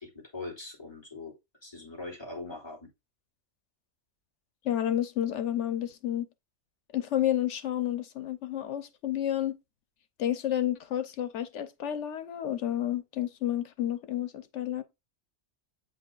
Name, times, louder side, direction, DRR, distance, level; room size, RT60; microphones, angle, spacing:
voice 1, 0.0-1.3 1.6-2.9, left 2 dB, 20° left, 3.4 m, -41 dB
voice 2, 4.6-6.3 6.9-9.6 10.2-14.8, left 11 dB, 85° left, 1.1 m, -30 dB
8.4 x 5.3 x 2.5 m
omnidirectional pair, 1.2 m